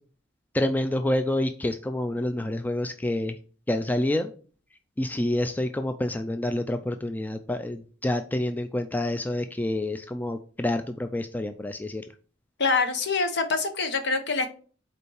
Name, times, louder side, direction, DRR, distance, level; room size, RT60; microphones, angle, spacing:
voice 1, 0.5-3.4 3.7-4.3 5.0-12.0, left 1 dB, 10° left, 7 dB, 0.3 m, -28 dB
voice 2, 12.6-14.5, left 4 dB, 60° left, 7 dB, 1.0 m, -25 dB
5.4 x 4.3 x 4.7 m, 0.41 s
head